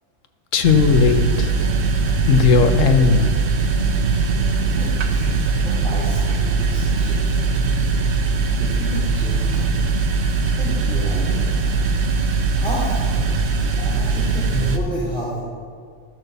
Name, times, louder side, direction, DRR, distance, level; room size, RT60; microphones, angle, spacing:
voice 1, 0.5-1.5 2.3-3.3, left 5 dB, 85° left, 8 dB, 1.2 m, -16 dB
sound 1, 0.6-14.8, right 4 dB, 60° right, 1.1 m, -20 dB
voice 2, 4.7-7.5 8.6-9.6 10.6-11.7 12.5-13.4 13.8-15.4, equal, 5° left, -9 dB, 2.6 m, -31 dB
14.0 x 6.0 x 6.7 m, 2.1 s
omnidirectional pair, 1.3 m